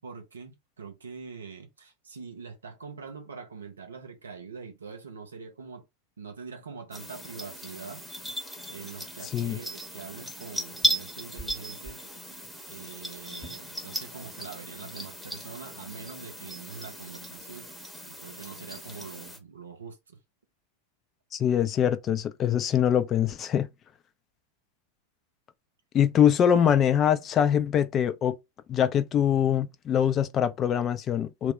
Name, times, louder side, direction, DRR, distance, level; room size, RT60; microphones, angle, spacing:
voice 1, 0.0-5.9 6.2-8.1 8.7-12.0 12.7-17.7 18.2-20.2, right 5 dB, 70° right, 0.8 m, -43 dB
sound 1, 6.9-19.4, right 1 dB, ahead, 0.8 m, -36 dB
voice 2, 9.2-9.6 21.3-23.7 25.9-28.4 28.7-31.5, left 9 dB, 30° left, 0.4 m, -23 dB
2.3 x 2.1 x 3.8 m
figure-of-eight pair, 90°, 0 cm